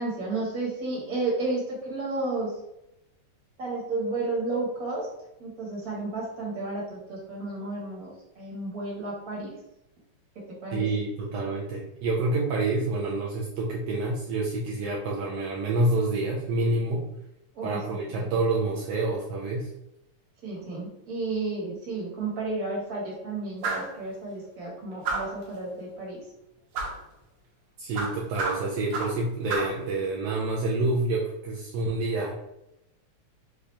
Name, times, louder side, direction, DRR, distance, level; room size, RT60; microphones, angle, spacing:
voice 1, 0.0-2.5 3.6-5.1 5.4-9.5 10.6-10.9 17.5-17.8 18.1-18.3 20.4-26.2, right 2 dB, 40° right, -4 dB, 1.5 m, -32 dB
voice 2, 10.7-17.1 17.6-19.7 27.8-32.3, right 2 dB, 80° right, -3 dB, 1.4 m, -28 dB
sound 1, 23.6-24.0 25.0-25.4 26.7-27.0 27.9-29.2 29.5-29.8, right 3 dB, 65° right, 1.9 m, -30 dB
5.7 x 2.5 x 3.3 m, 0.86 s
omnidirectional pair, 3.6 m